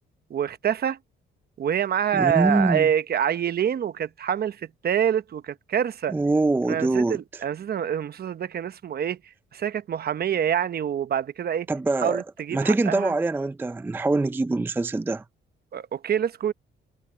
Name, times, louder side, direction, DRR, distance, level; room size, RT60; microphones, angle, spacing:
voice 1, 0.3-1.0 1.6-6.1 6.7-9.2 9.5-11.7 12.0-13.1 15.7-16.5, right 9 dB, 50° right, 0.9 m, -26 dB
voice 2, 2.1-2.9 6.1-7.4 11.7-12.2 12.5-15.2, right 2 dB, 10° right, 0.4 m, -24 dB
cardioid pair, 90°, 20 cm